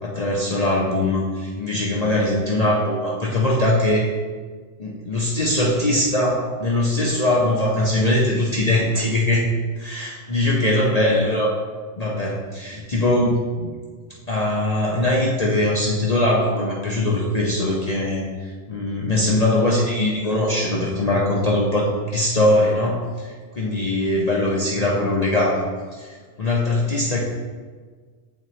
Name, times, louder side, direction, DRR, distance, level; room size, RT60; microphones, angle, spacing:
voice 1, 0.0-4.1 4.8-9.5 9.8-11.6 12.0-13.7 14.3-25.6 25.9-27.2, left 1 dB, 40° left, -4 dB, 0.6 m, -21 dB
7.6 x 4.1 x 3.1 m, 1.5 s
omnidirectional pair, 1.3 m